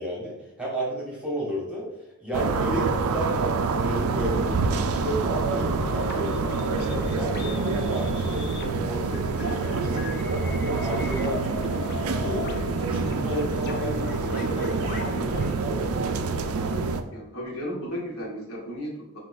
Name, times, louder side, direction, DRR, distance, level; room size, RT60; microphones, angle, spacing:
voice 1, 0.0-1.9 2.2-3.4 3.7-8.5 8.8-10.0 10.3-12.5 12.8-16.5, equal, 5° right, -5 dB, 1.2 m, -33 dB
sound 1, 2.3-17.0, right 4 dB, 90° right, 0.4 m, -27 dB
sound 2, 5.8-15.5, left 4 dB, 50° left, 0.4 m, -39 dB
voice 2, 17.1-19.2, equal, 70° left, -4 dB, 1.5 m, -34 dB
3.7 x 2.8 x 4.0 m, 0.84 s
head